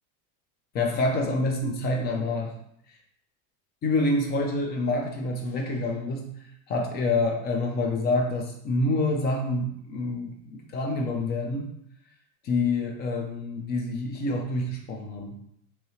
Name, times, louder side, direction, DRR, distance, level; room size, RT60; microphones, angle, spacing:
voice 1, 0.7-2.5 3.8-6.3 6.7-11.7 12.4-15.3, left 2 dB, 25° left, 2 dB, 0.3 m, -27 dB
3.1 x 2.7 x 2.7 m, 0.71 s
supercardioid pair, 135°, 41 cm